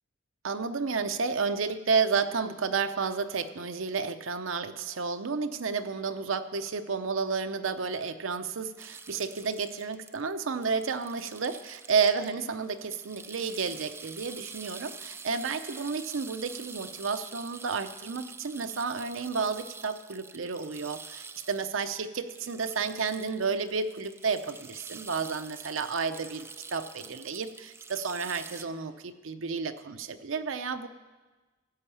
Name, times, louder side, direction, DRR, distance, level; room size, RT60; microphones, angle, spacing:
voice 1, 0.4-30.9, right 5 dB, 75° right, 9 dB, 0.7 m, -31 dB
sound 1, 8.8-12.3 12.6-28.6, right 4 dB, 15° right, 0.4 m, -46 dB
14.5 x 5.5 x 8.3 m, 1.3 s
head